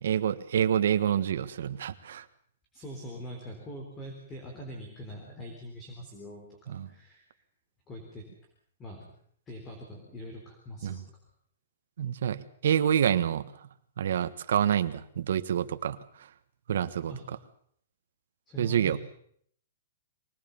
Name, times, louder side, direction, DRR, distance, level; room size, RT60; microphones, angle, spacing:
voice 1, 0.0-2.2 6.7-6.9 10.8-11.0 12.0-13.5 14.0-16.0 16.7-17.1 18.6-19.0, right 9 dB, 65° right, 11 dB, 1.5 m, -27 dB
voice 2, 2.7-6.4 6.9-7.2 7.9-8.2 8.8-9.1 9.5-11.0 17.1-17.2 18.5-19.0, right 1 dB, 15° left, 1 dB, 3.7 m, -42 dB
23.5 x 19.0 x 7.1 m, 0.63 s
hypercardioid pair, 175°, 0 cm